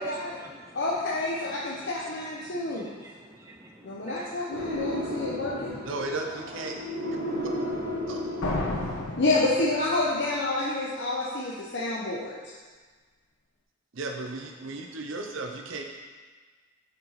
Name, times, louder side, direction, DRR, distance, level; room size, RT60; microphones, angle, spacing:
voice 1, 0.0-4.4 14.6-15.0, right 3 dB, 15° right, -1 dB, 0.5 m, -45 dB
voice 2, 0.7-2.9 3.8-5.8 9.2-12.4, left 2 dB, 55° left, -6 dB, 1.0 m, -28 dB
sound 1, 4.5-9.1, left 1 dB, 85° right, 2.5 m, -33 dB
voice 3, 5.8-6.8 8.1-8.2 13.9-15.8, right 3 dB, 65° right, 3 dB, 0.7 m, -35 dB
sound 2, 8.4-10.2, left 1 dB, 85° left, 1.3 m, -32 dB
7.1 x 7.0 x 4.1 m, 1.4 s
head